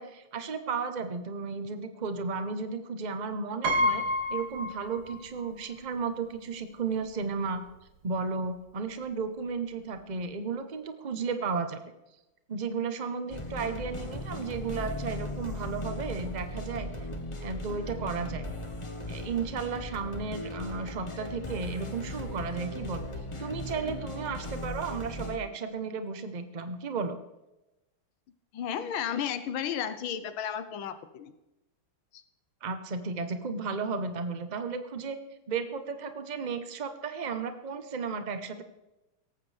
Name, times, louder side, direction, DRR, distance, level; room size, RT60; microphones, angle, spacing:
voice 1, 0.0-4.0 4.3-7.6 8.0-11.8 12.5-16.9 17.4-18.4 19.1-23.1 23.4-27.2 32.6-35.2 35.5-38.6, right 5 dB, 80° right, 8 dB, 0.4 m, -34 dB
Piano, 3.6-5.5 5.8-5.9 7.0-7.1 7.4-7.7, left 1 dB, 65° right, 2.1 m, -29 dB
sound 1, 13.3-25.4, left 1 dB, 25° left, 0.7 m, -37 dB
voice 2, 28.5-31.3 32.1-32.2, left 8 dB, 70° left, 11 dB, 1.6 m, -33 dB
18.0 x 14.5 x 3.4 m, 0.97 s
omnidirectional pair, 2.4 m